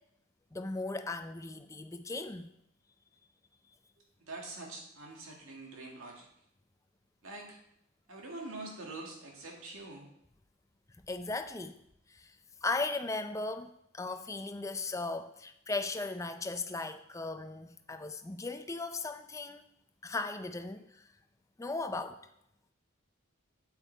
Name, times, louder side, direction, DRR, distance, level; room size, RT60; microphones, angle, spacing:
voice 1, 0.5-2.5 11.1-11.8 12.1-12.3 12.6-19.6 20.0-21.0 21.6-22.2, left 3 dB, 15° left, 8 dB, 0.4 m, -37 dB
voice 2, 4.2-6.3 7.2-7.6 8.1-10.1, right 2 dB, 90° right, 0 dB, 2.1 m, -45 dB
8.3 x 8.2 x 3.4 m, 0.76 s
head